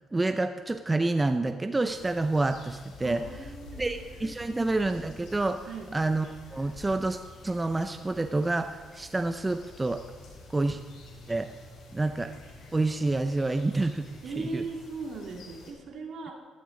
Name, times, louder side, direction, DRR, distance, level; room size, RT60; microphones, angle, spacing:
voice 1, 0.1-3.2 3.8-5.7 5.9-6.3 6.5-10.0 10.5-10.8 11.3-11.5 11.9-12.3 12.7-14.1 14.4-14.6, right 2 dB, 20° right, 8 dB, 0.6 m, -28 dB
sound 1, 1.9-15.7, left 2 dB, 80° left, 4.2 m, -49 dB
voice 2, 3.0-4.0 4.4-4.6 5.7-5.9 14.2-16.3, right 3 dB, 65° right, 1 dB, 2.3 m, -38 dB
13.5 x 13.0 x 3.9 m, 1.4 s
cardioid pair, 90°, 0 cm